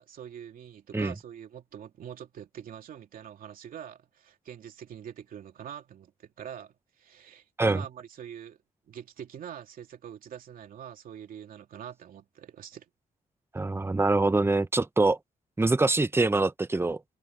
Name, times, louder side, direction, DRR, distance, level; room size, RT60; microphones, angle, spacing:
voice 1, 0.0-8.6 8.9-12.9, right 9 dB, 80° right, 3.0 m, -44 dB
voice 2, 13.5-15.2 15.6-17.0, right 2 dB, 15° right, 0.9 m, -24 dB
cardioid pair, 65°, 14 cm